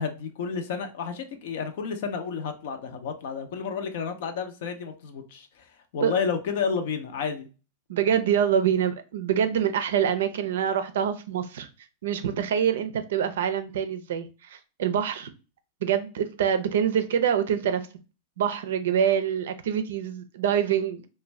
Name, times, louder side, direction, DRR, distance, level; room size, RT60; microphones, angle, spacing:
voice 1, 0.0-7.5, left 6 dB, 65° left, 0.5 m, -31 dB
voice 2, 7.9-11.7 12.0-15.3 15.8-17.9 18.4-21.1, right 8 dB, 75° right, 0.4 m, -25 dB
2.5 x 2.2 x 3.1 m
hypercardioid pair, 110°, 0 cm